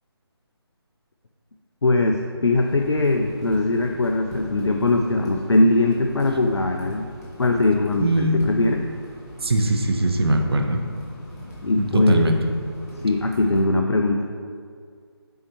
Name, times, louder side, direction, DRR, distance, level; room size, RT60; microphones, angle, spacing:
voice 1, 1.8-7.1 7.4-8.8 11.6-12.3 13.0-14.2, left 2 dB, 85° left, 3 dB, 0.5 m, -21 dB
sound 1, 2.5-13.6, equal, 35° left, 1.5 m, -40 dB
voice 2, 8.0-8.4 9.4-10.8 11.8-12.4, right 1 dB, 65° right, 4 dB, 0.8 m, -21 dB
8.1 x 4.4 x 3.1 m, 2.2 s
figure-of-eight pair, 155°, 14 cm